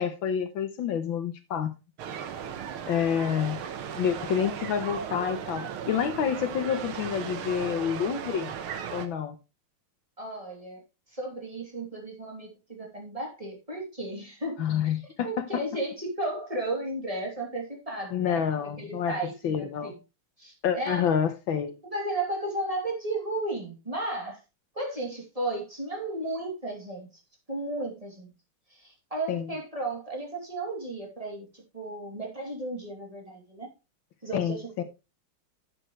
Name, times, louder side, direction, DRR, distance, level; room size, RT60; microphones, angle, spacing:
voice 1, 0.0-1.7 2.8-3.6 3.9-8.5 8.9-9.3 14.6-15.5 18.1-19.1 19.4-19.9 20.6-21.7 29.3-29.5 34.3-34.8, left 8 dB, 70° left, 1.7 m, -28 dB
sound 1, 2.0-9.1, right 8 dB, 85° right, 2.0 m, -36 dB
voice 2, 10.2-10.8 11.1-14.6 15.2-19.9 20.4-21.2 21.8-24.4 24.7-27.1 27.5-28.3 28.7-33.7 34.2-34.8, right 2 dB, 15° right, 3.0 m, -34 dB
11.5 x 7.8 x 3.2 m
omnidirectional pair, 2.3 m